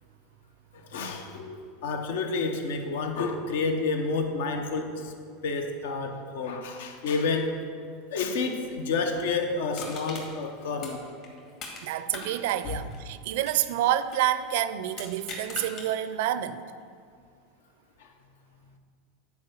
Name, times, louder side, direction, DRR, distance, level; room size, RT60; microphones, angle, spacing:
voice 1, 0.7-5.1 5.4-7.6 8.1-11.1 12.6-12.8 18.0-18.1, left 4 dB, 80° left, 5 dB, 0.9 m, -30 dB
Crushing, 9.7-11.8 12.1-14.3 14.9-15.9 16.3-16.4, left 4 dB, 55° left, 2.3 m, -41 dB
voice 2, 11.8-16.6, right 12 dB, 70° right, 14 dB, 0.4 m, -28 dB
9.6 x 4.8 x 7.0 m, 2.2 s
supercardioid pair, 120°, 0 cm